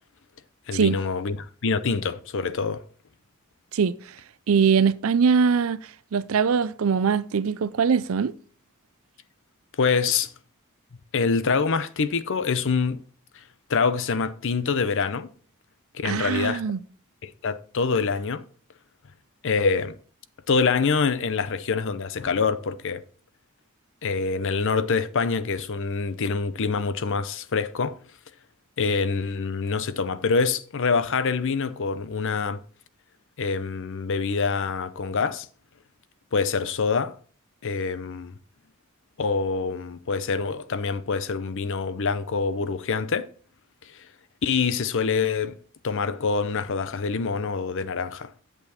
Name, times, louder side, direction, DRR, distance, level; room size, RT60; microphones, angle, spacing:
voice 1, 0.7-2.8 9.8-10.3 11.1-13.0 13.3-13.4 13.7-15.3 15.9-16.6 17.2-18.4 19.4-20.0 20.5-23.0 24.0-28.0 28.8-32.6 33.4-35.5 36.3-37.2 37.6-38.3 39.2-43.3 43.8-44.1 44.4-45.6 45.8-48.3, left 5 dB, 60° left, 0.6 m, -25 dB
voice 2, 4.5-5.8 6.1-8.3 16.0-16.8, right 6 dB, 70° right, 0.5 m, -22 dB
8.3 x 6.9 x 4.2 m
head